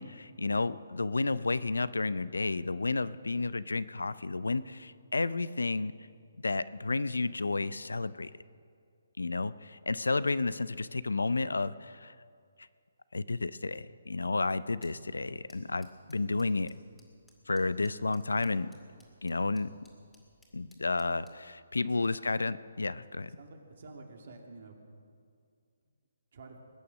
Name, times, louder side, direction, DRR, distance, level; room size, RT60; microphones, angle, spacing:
voice 1, 0.0-5.9 6.4-8.3 9.2-12.1 13.1-16.7 17.5-18.7 19.2-19.7 20.5-21.2 21.7-23.3, left 3 dB, 85° left, 16 dB, 0.6 m, -31 dB
sound 1, 14.6-21.5, left 1 dB, 5° left, 2.3 m, -66 dB
voice 2, 23.4-25.0 25.8-25.9 26.3-26.6, right 3 dB, 55° right, 2 dB, 2.5 m, -50 dB
20.5 x 9.5 x 6.4 m, 2.2 s
figure-of-eight pair, 145°, 0 cm